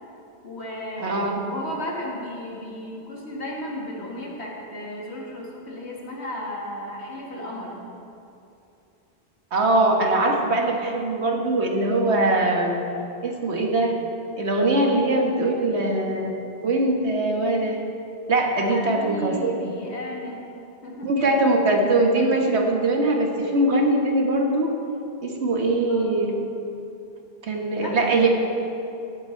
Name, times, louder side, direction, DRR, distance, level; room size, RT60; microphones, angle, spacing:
voice 1, 0.4-7.8 18.6-20.4 20.8-21.1 25.9-26.1 27.8-28.2, equal, 80° left, -2 dB, 2.1 m, -34 dB
voice 2, 1.0-1.4 9.5-12.8 13.2-14.0 14.4-16.3 16.6-17.8 18.3-19.6 21.0-24.7 25.2-26.4 27.4-28.3, right 2 dB, 90° right, 1 dB, 1.6 m, -22 dB
17.0 x 7.6 x 4.5 m, 2.8 s
omnidirectional pair, 1.1 m